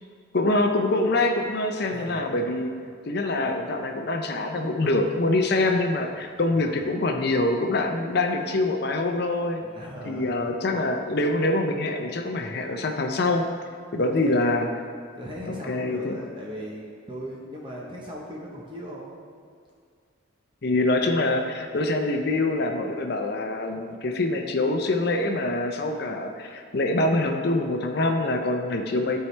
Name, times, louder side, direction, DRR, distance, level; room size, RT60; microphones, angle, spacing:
voice 1, 0.3-2.7 3.1-9.6 10.0-13.4 13.9-14.7 15.5-16.2 20.6-29.2, left 2 dB, 50° left, 4 dB, 0.5 m, -25 dB
voice 2, 1.9-2.9 6.5-6.7 9.6-10.8 14.2-14.6 15.2-19.2, equal, 25° right, -4 dB, 0.9 m, -39 dB
12.5 x 4.6 x 3.3 m, 2.1 s
head